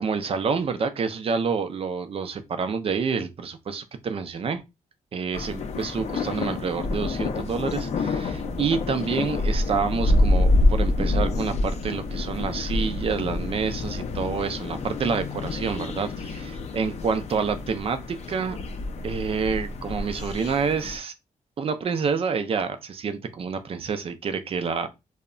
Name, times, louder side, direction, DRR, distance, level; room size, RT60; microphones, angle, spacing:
voice 1, 0.0-4.6 5.1-18.6 19.0-21.1 21.6-24.9, right 5 dB, 45° right, 0.4 m, -28 dB
sound 1, 5.3-21.0, left 2 dB, 55° left, 0.4 m, -27 dB
2.3 x 2.1 x 3.7 m
wide cardioid pair, 130°, 14 cm